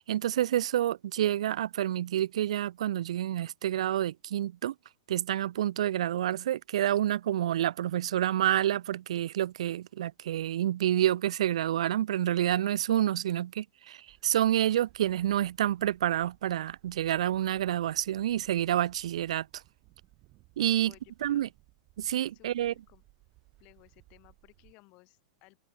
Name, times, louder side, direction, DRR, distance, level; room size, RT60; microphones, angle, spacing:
voice 1, 0.0-4.7 5.1-19.6 20.6-20.9 21.2-21.5 22.0-22.7, right 12 dB, 70° right, 0.6 m, -28 dB
sound 1, 14.1-24.7, right 21 dB, 30° right, 5.3 m, -62 dB
voice 2, 20.8-21.5 22.3-23.0 23.6-25.6, left 26 dB, 30° left, 5.8 m, -59 dB
supercardioid pair, 175°, 3 cm